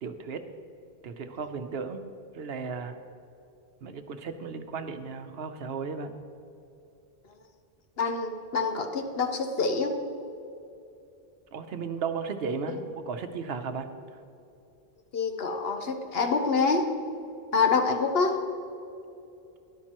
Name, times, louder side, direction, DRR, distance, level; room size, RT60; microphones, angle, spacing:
voice 1, 0.0-0.4 1.0-2.0 2.3-3.0 3.8-6.1 11.5-13.9, right 5 dB, 75° right, 8 dB, 1.0 m, -35 dB
voice 2, 8.0-9.9 12.7-12.8 15.1-16.9 17.5-18.4, left 4 dB, 70° left, 5 dB, 1.1 m, -26 dB
13.0 x 11.0 x 3.0 m, 2.8 s
omnidirectional pair, 1.0 m